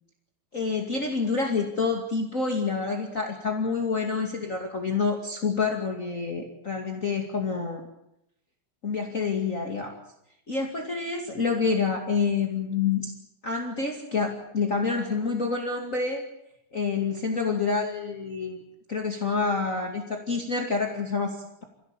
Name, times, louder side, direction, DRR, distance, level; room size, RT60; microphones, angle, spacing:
voice 1, 0.5-7.8 8.8-9.9 10.5-13.1 13.4-16.2 16.7-18.6 18.9-21.6, left 4 dB, 30° left, 2 dB, 1.5 m, -28 dB
28.0 x 17.0 x 8.9 m, 0.80 s
omnidirectional pair, 5.1 m